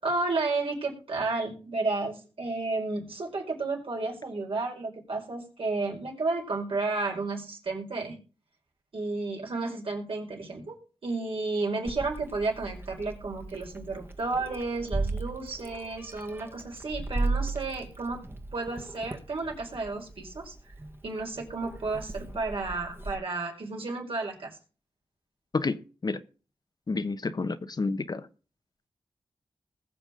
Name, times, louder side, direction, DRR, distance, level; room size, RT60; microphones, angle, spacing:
voice 1, 0.0-8.2 8.9-10.8 11.0-18.2 18.5-20.5 21.0-24.6, right 3 dB, 70° right, 4.9 m, -32 dB
Meow, 11.8-23.1, right 3 dB, 25° right, 1.6 m, -36 dB
voice 2, 26.9-28.3, left 3 dB, 45° left, 1.0 m, -29 dB
20.5 x 7.0 x 3.8 m
cardioid pair, 60°, 10 cm